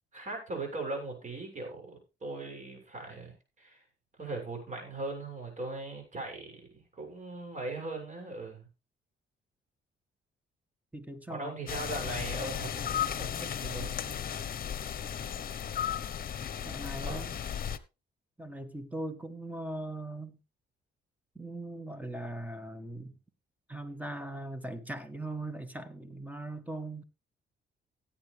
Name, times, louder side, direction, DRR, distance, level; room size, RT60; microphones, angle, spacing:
voice 1, 0.1-3.8 4.2-8.7 11.3-14.2 17.0-17.2, right 2 dB, 40° right, 7.0 m, -39 dB
voice 2, 10.9-11.6 16.7-17.4 18.4-20.4 21.4-23.2 23.7-27.0, right 1 dB, 10° right, 1.7 m, -40 dB
sound 1, 11.7-17.8, left 9 dB, 45° left, 1.0 m, -35 dB
17.0 x 8.8 x 3.4 m
cardioid pair, 90°, 20 cm